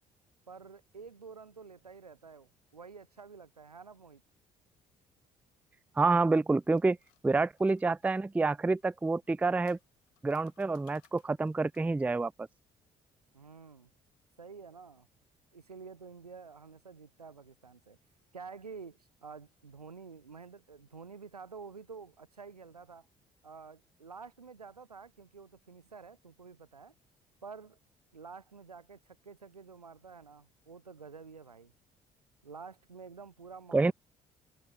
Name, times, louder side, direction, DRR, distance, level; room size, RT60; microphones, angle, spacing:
voice 1, 0.5-4.2 13.3-13.9 14.4-15.1 15.5-18.0 18.3-23.1 23.4-26.9 27.4-27.8 28.1-31.7 32.4-33.9, right 5 dB, 90° right, 3.4 m, -49 dB
sound 1, 5.9-8.2 9.2-12.0, left 30 dB, 70° left, 6.2 m, -68 dB
voice 2, 6.0-7.0 7.2-9.8 10.2-12.5 33.7-33.9, right 3 dB, 10° right, 0.4 m, -28 dB
figure-of-eight pair, 50°, 19 cm